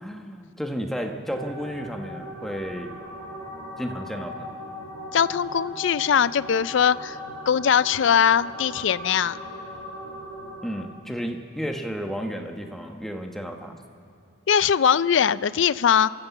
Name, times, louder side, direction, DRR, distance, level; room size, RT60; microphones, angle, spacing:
voice 1, 0.0-3.0 3.8-4.5 10.6-13.8, equal, ahead, 3 dB, 1.0 m, -32 dB
sound 1, 1.3-10.8, equal, 80° right, 3.8 m, -38 dB
voice 2, 5.1-7.2 7.5-9.4 14.5-16.1, left 8 dB, 65° left, 18 dB, 0.4 m, -21 dB
26.0 x 13.5 x 8.2 m, 2.5 s
head